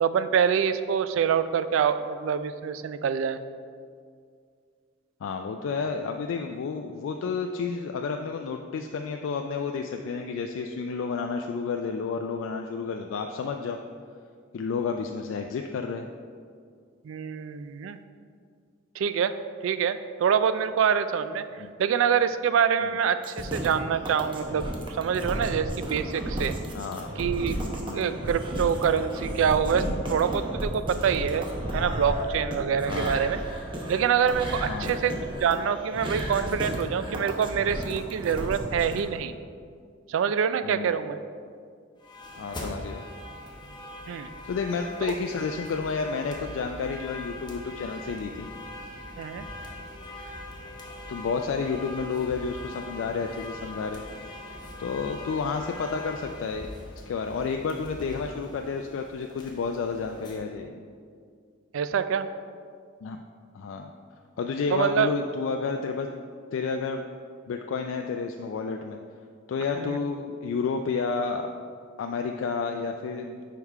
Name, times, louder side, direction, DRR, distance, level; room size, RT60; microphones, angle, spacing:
voice 1, 0.0-3.4 17.0-18.0 19.0-19.3 19.6-21.4 21.8-24.7 25.0-26.5 27.2-27.5 27.9-31.5 31.7-33.4 33.9-39.3 40.1-41.2 44.1-44.3 45.1-45.2 49.2-49.4 61.7-62.3 64.7-65.1 69.8-70.0, right 7 dB, 75° right, 11 dB, 0.3 m, -25 dB
voice 2, 5.2-13.8 14.5-16.0 21.6-21.7 26.7-27.1 27.8-28.2 32.9-33.1 34.6-35.0 40.6-41.0 42.4-43.0 44.5-48.5 51.1-54.1 54.8-56.7 57.1-60.8 63.0-63.2 63.5-63.9 64.4-66.1 66.5-67.0 67.5-69.0 69.5-71.5 72.0-73.4, left 5 dB, 70° left, 4 dB, 0.3 m, -31 dB
sound 1, 23.2-39.0, right 1 dB, 25° right, 0.8 m, -33 dB
sound 2, 42.0-60.4, left 1 dB, 20° left, 0.9 m, -42 dB
5.4 x 4.7 x 4.7 m, 2.2 s
head